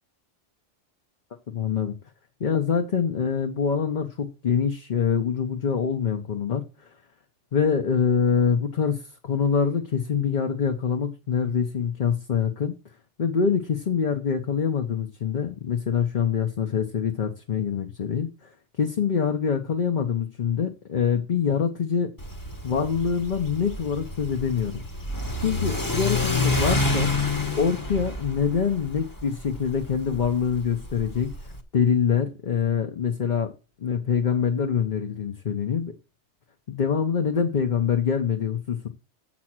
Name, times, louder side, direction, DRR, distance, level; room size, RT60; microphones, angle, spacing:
voice 1, 1.5-1.9 2.4-6.6 7.5-12.8 13.2-18.5 18.8-22.1 22.6-24.8 25.4-27.1 27.6-31.3 31.7-33.5 33.8-35.9 36.7-38.9, left 7 dB, 45° left, 0.9 m, -25 dB
Car / Accelerating revving vroom, 22.2-31.6, left 2 dB, 20° left, 1.0 m, -28 dB
7.5 x 6.1 x 6.0 m
omnidirectional pair, 1.2 m